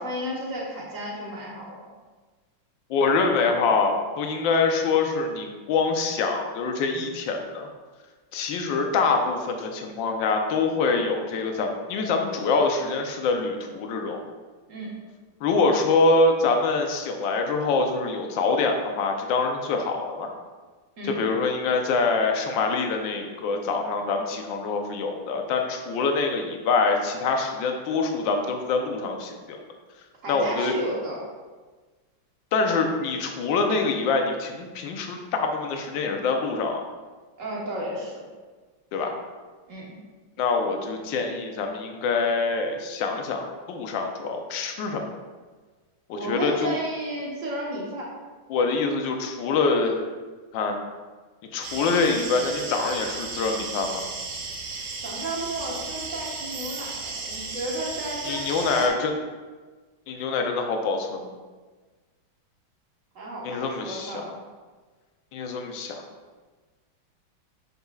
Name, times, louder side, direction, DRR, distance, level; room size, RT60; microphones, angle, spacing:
voice 1, 0.0-1.7 14.7-14.9 21.0-21.2 30.2-31.2 37.4-38.2 39.7-39.9 46.1-48.1 55.0-59.0 63.1-64.3, right 1 dB, 45° right, -4 dB, 1.5 m, -33 dB
voice 2, 2.9-7.7 8.3-14.2 15.4-20.4 21.0-29.6 30.3-30.7 32.5-36.8 38.9-39.1 40.4-45.0 46.1-46.8 48.5-50.0 50.5-50.7 51.5-54.0 58.2-59.1 60.1-61.3 63.4-64.2 65.3-66.0, left 4 dB, 70° left, 3 dB, 1.4 m, -25 dB
sound 1, 51.6-58.9, right 4 dB, 70° right, 1.5 m, -35 dB
8.1 x 5.3 x 2.4 m, 1.4 s
omnidirectional pair, 2.2 m